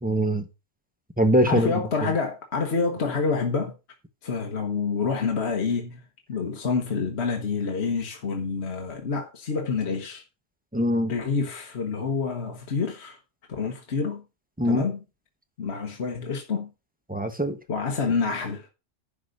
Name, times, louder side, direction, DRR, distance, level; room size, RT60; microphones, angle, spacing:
voice 1, 0.0-0.5 1.2-2.1 10.7-11.1 14.6-14.8 17.1-17.6, equal, 5° right, 1.1 m, -23 dB
voice 2, 1.4-3.7 4.2-6.0 6.3-10.2 11.1-13.2 13.6-14.2 14.6-15.0 15.6-16.7 17.7-18.7, left 5 dB, 55° left, 1.5 m, -27 dB
11.0 x 4.1 x 6.6 m
omnidirectional pair, 1.3 m